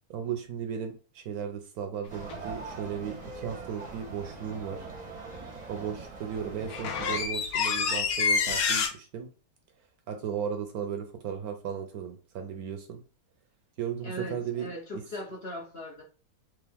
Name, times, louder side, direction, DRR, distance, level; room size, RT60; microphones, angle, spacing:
voice 1, 0.1-4.9 5.7-9.3 10.1-13.0 13.8-14.7, right 8 dB, 65° right, 5 dB, 1.0 m, -35 dB
sound 1, 2.1-7.3, right 4 dB, 35° right, 0.7 m, -42 dB
sound 2, 2.3-2.4 6.0-6.1 6.4-8.9, left 5 dB, 65° left, 1.1 m, -27 dB
voice 2, 14.0-16.0, equal, 45° left, -1 dB, 0.9 m, -39 dB
3.5 x 3.1 x 3.5 m, 0.36 s
omnidirectional pair, 1.8 m